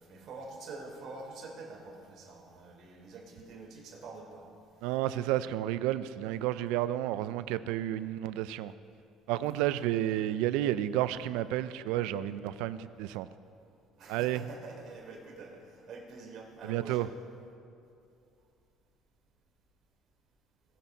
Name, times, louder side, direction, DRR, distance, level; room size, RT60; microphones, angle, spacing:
voice 1, 0.0-4.5 6.3-6.4 9.6-9.8 14.0-17.2, right 3 dB, 55° right, -1 dB, 3.2 m, -46 dB
voice 2, 4.8-8.7 9.3-13.3 14.1-14.4 16.7-17.1, right 13 dB, 85° right, 14 dB, 0.4 m, -31 dB
20.0 x 7.6 x 4.0 m, 2.5 s
cardioid pair, 105°, 0 cm